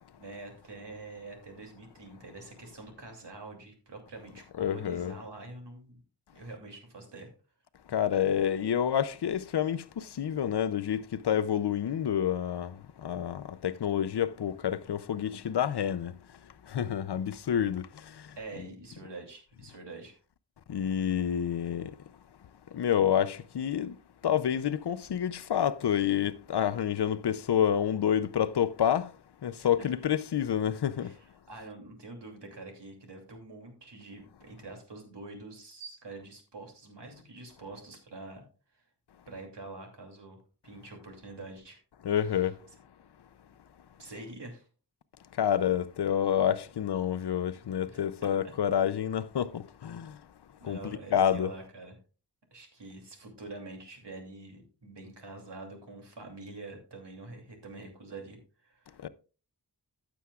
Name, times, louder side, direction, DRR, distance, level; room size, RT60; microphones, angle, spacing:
voice 1, 0.0-6.0 6.3-7.3 18.4-20.2 29.6-30.1 30.9-38.4 38.7-38.8 39.3-41.8 42.2-42.5 44.0-44.7 47.9-48.5 50.6-52.0 52.5-59.0, right 2 dB, 90° right, 2.8 m, -46 dB
voice 2, 4.6-5.1 7.9-9.8 10.2-12.7 13.0-16.1 16.7-17.9 20.7-21.9 22.7-23.9 24.2-29.1 29.4-31.1 42.1-42.5 45.4-50.1 50.7-51.5 59.0-59.1, left 9 dB, 75° left, 0.6 m, -28 dB
15.5 x 7.0 x 2.4 m
wide cardioid pair, 75°, 41 cm